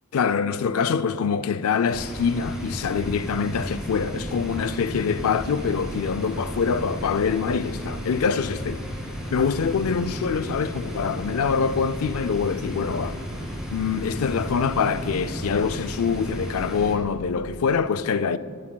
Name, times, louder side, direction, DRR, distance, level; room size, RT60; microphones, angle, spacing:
voice 1, 0.1-8.8 9.3-13.2 13.7-18.4, left 6 dB, 65° left, 0.4 m, -25 dB
sound 1, 1.9-16.9, equal, 5° right, 2.1 m, -33 dB
18.5 x 11.0 x 2.3 m
head